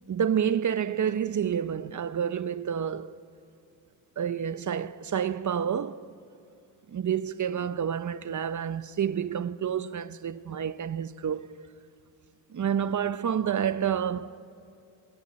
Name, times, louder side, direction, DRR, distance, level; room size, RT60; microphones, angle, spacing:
voice 1, 0.1-3.1 4.2-6.0 6.9-11.6 12.5-14.4, right 8 dB, 40° right, 0.7 m, -29 dB
29.0 x 22.5 x 4.3 m
cardioid pair, 70°, 47 cm